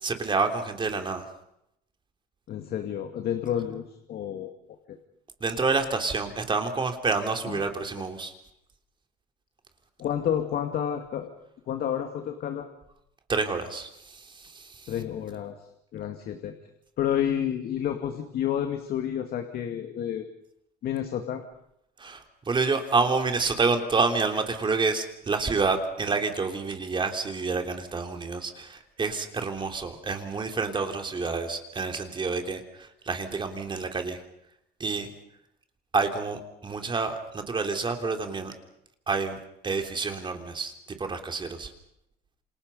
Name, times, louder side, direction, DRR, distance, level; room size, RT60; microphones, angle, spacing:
voice 1, 0.0-1.2 5.4-8.3 13.3-14.9 22.0-34.2 34.8-35.1 35.9-38.5 39.1-41.7, right 4 dB, 30° right, 5 dB, 3.3 m, -28 dB
voice 2, 2.5-4.5 4.9-5.0 7.4-7.7 10.0-11.3 11.7-12.7 14.9-15.6 15.9-16.5 17.0-20.2 20.8-21.4, left 9 dB, 65° left, 6 dB, 2.3 m, -30 dB
28.5 x 26.5 x 5.5 m, 0.78 s
cardioid pair, 110°, 17 cm